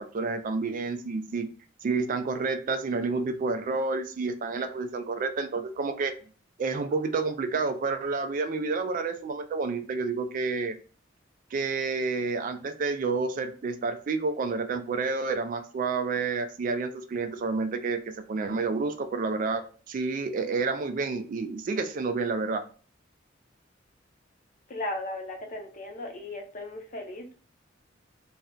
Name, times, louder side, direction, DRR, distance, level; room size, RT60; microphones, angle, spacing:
voice 1, 0.0-1.5 1.8-6.1 6.6-10.8 11.5-22.6, right 4 dB, 45° right, 9 dB, 0.3 m, -29 dB
voice 2, 24.7-27.4, left 1 dB, 40° left, 2 dB, 0.6 m, -36 dB
2.4 x 2.1 x 3.6 m, 0.38 s
head